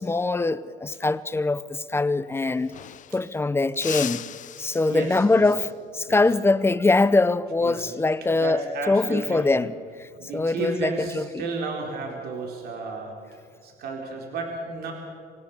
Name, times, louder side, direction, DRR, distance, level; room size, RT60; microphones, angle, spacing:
voice 1, 0.0-2.7 3.1-4.2 4.6-5.7 5.9-8.6 8.9-9.7 10.0-10.1 10.3-11.4, left 3 dB, 15° left, 0.8 m, -23 dB
sound 1, 2.1-2.2 2.4-3.4 3.7-5.5 8.0-8.3 9.7-10.2, left 10 dB, 50° left, 0.7 m, -38 dB
voice 2, 4.9-5.5 6.1-6.2 7.6-8.0 8.3-9.6 10.2-13.2 13.6-14.9, right 3 dB, 70° right, 3.9 m, -33 dB
26.5 x 17.5 x 7.1 m
cardioid pair, 110°, 17 cm